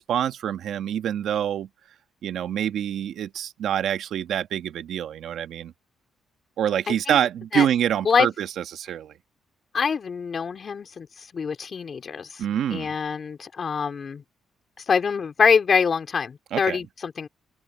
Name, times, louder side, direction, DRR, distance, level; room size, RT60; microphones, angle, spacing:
voice 1, 0.0-1.7 2.2-5.7 6.6-9.1 12.4-12.9 16.5-16.8, right 10 dB, 70° right, 1.3 m, -26 dB
voice 2, 9.7-11.1 11.3-12.4 12.7-14.2 14.9-17.3, left 6 dB, 45° left, 3.7 m, -24 dB
open air
cardioid pair, 90°, 0 cm